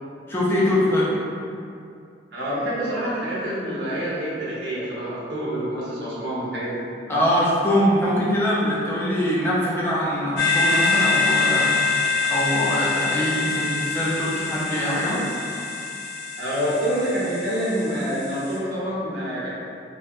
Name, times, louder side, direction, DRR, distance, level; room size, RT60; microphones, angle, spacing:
voice 1, 0.3-1.1 7.1-11.7 12.2-15.2, equal, 10° left, -8 dB, 0.5 m, -23 dB
voice 2, 2.3-6.8 16.4-19.5, equal, 70° right, -9 dB, 0.9 m, -27 dB
sound 1, 10.4-18.6, left 3 dB, 60° left, 0.6 m, -25 dB
3.3 x 2.1 x 2.6 m, 2.5 s
head